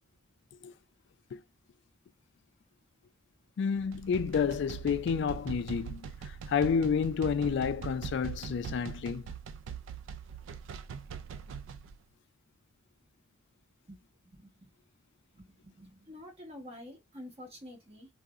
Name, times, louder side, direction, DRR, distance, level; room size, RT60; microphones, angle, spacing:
voice 1, 3.6-6.1 6.5-9.3, left 6 dB, 60° left, 0.3 m, -30 dB
sound 1, 3.8-11.9, right 7 dB, 75° right, 0.3 m, -42 dB
voice 2, 14.2-14.7 15.3-18.1, left 1 dB, 30° right, 1.3 m, -48 dB
3.7 x 2.1 x 2.3 m
head